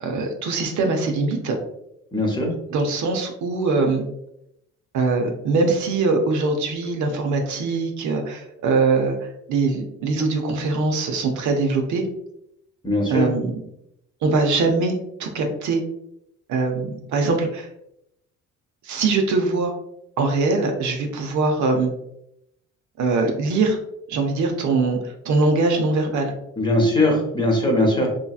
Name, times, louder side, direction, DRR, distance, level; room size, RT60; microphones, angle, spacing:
voice 1, 0.0-1.5 2.7-4.1 4.9-12.1 13.1-13.6 14.2-15.8 16.5-17.7 18.8-19.7 20.2-21.9 23.0-23.8 24.1-26.3, right 3 dB, 75° right, 3 dB, 0.7 m, -22 dB
voice 2, 2.1-2.5 12.8-13.3 26.6-28.1, left 1 dB, 15° left, 0 dB, 0.8 m, -20 dB
3.0 x 2.7 x 2.3 m, 0.79 s
cardioid pair, 90°, 30 cm